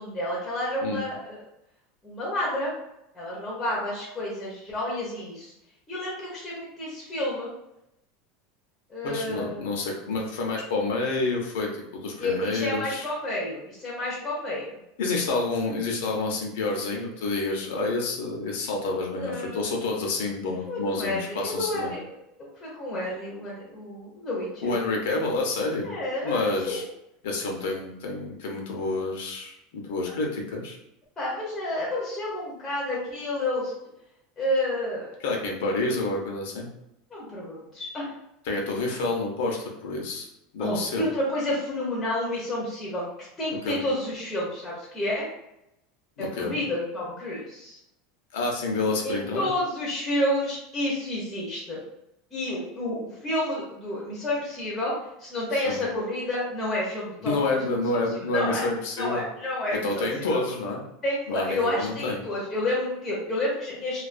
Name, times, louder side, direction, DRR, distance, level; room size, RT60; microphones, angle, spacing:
voice 1, 0.0-1.4 2.0-2.7 3.1-5.5 5.9-7.5 8.9-9.6 12.2-14.8 19.1-20.0 20.7-22.0 22.6-24.8 25.8-26.8 31.2-33.7 34.4-35.1 37.1-38.1 40.6-43.1 43.4-45.3 46.2-47.8 49.0-51.8 52.3-57.6 58.1-58.6 59.0-60.4 61.0-64.0, left 1 dB, 10° left, -6 dB, 0.6 m, -30 dB
voice 2, 9.0-13.1 15.0-21.9 24.6-25.9 26.2-26.8 27.2-30.8 35.2-36.7 38.5-40.3 40.5-41.1 43.6-43.8 46.2-46.6 48.3-49.5 55.7-55.8 57.2-59.2 59.7-60.8 61.3-62.2, left 3 dB, 75° left, 0 dB, 0.6 m, -28 dB
2.3 x 2.2 x 2.4 m, 0.83 s
supercardioid pair, 165°, 0 cm